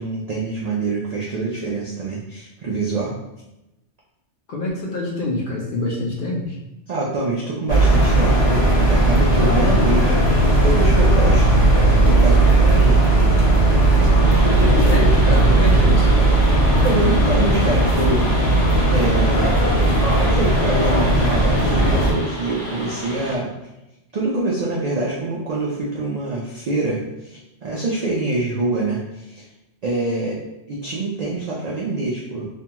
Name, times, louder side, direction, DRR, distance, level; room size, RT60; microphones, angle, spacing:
voice 1, 0.0-3.2 6.9-11.5 12.0-13.5 14.0-15.1 16.8-18.3 18.9-19.8 20.2-23.5 24.1-29.5 29.8-30.4 30.7-32.5, right 2 dB, 70° right, -4 dB, 0.4 m, -25 dB
voice 2, 4.5-6.6 14.4-16.1, left 2 dB, 55° left, -2 dB, 0.6 m, -25 dB
sound 1, 7.7-22.1, right 2 dB, 80° left, 1.1 m, -16 dB
sound 2, 14.2-23.4, equal, 15° left, 0.7 m, -32 dB
2.7 x 2.2 x 2.8 m, 0.95 s
omnidirectional pair, 1.2 m